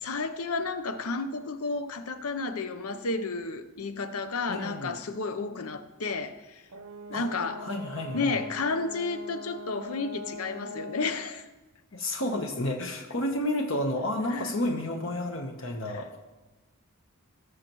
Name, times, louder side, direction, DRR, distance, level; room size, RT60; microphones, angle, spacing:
voice 1, 0.0-6.6 7.1-7.6 8.1-11.4 14.3-14.5, left 3 dB, 80° left, 0.7 m, -32 dB
voice 2, 4.5-4.9 7.1-7.3 7.6-8.4 11.9-16.2, left 1 dB, 60° left, 1.0 m, -31 dB
Brass instrument, 6.7-11.2, left 1 dB, 75° right, 0.7 m, -42 dB
19.5 x 6.5 x 3.0 m
head